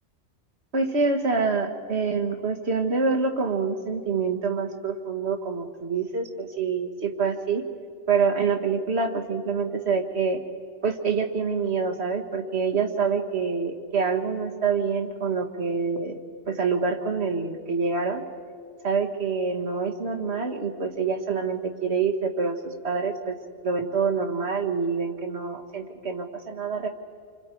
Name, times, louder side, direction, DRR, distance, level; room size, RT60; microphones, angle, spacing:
voice 1, 0.7-7.6 8.1-10.4 10.8-16.2 16.5-18.2 18.8-23.4 23.6-26.9, right 5 dB, 55° right, 4 dB, 1.8 m, -26 dB
28.0 x 25.5 x 4.6 m, 2.1 s
omnidirectional pair, 1.3 m